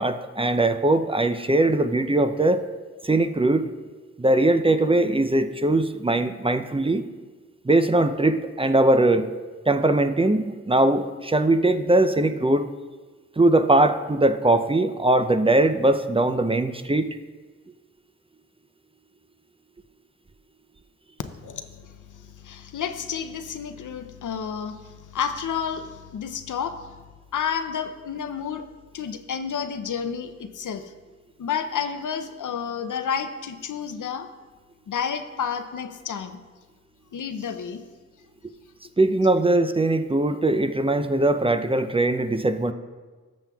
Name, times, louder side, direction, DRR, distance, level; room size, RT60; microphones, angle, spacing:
voice 1, 0.0-2.6 3.0-3.7 4.2-7.0 7.6-9.3 9.7-12.7 13.4-17.1 39.0-42.7, right 2 dB, 20° right, 9 dB, 0.5 m, -21 dB
voice 2, 21.4-27.0 27.3-28.7 28.9-30.8 31.4-34.3 34.9-36.4 37.1-37.8, left 7 dB, 85° left, 9 dB, 0.6 m, -30 dB
13.0 x 7.1 x 2.3 m, 1.3 s
cardioid pair, 50°, 30 cm